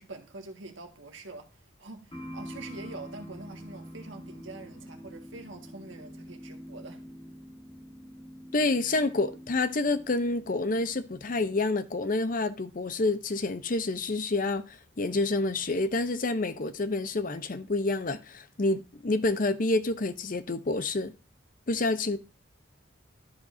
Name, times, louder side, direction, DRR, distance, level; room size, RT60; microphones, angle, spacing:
voice 1, 0.0-7.0, right 2 dB, 70° right, 1.6 m, -45 dB
sound 1, 2.1-11.6, equal, 25° left, 1.4 m, -46 dB
voice 2, 8.5-21.1 21.7-22.2, left 2 dB, 40° left, 0.6 m, -28 dB
13.0 x 5.2 x 2.6 m
head